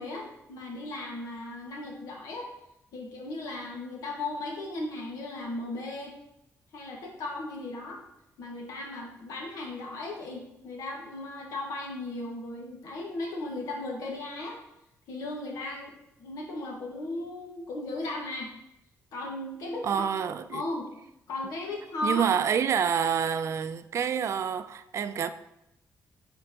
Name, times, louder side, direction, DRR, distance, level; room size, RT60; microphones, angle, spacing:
voice 1, 0.0-2.5 2.9-6.2 6.7-8.0 8.4-14.6 15.1-18.5 19.1-20.0 20.5-20.9 21.3-22.3, left 2 dB, 85° left, 1.6 m, -36 dB
voice 2, 19.8-20.6 22.0-25.3, right 7 dB, 55° right, 0.4 m, -27 dB
9.0 x 4.4 x 2.9 m
cardioid pair, 110°, 6 cm